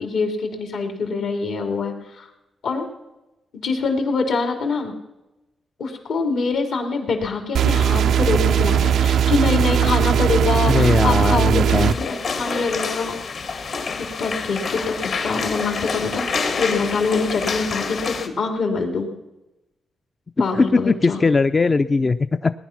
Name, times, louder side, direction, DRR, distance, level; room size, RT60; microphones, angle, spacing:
voice 1, 0.0-2.3 2.6-2.9 3.6-4.9 5.8-13.2 14.0-19.1 20.4-21.2, left 4 dB, 80° left, 3 dB, 3.0 m, -24 dB
sound 1, 7.5-11.9, right 9 dB, 80° right, 0.4 m, -18 dB
voice 2, 10.7-12.0 20.5-22.5, left 4 dB, 35° left, 10 dB, 0.4 m, -19 dB
sound 2, 11.7-18.3, left 4 dB, 65° left, 1.9 m, -27 dB
19.0 x 10.5 x 5.9 m, 0.98 s
cardioid pair, 75°, 0 cm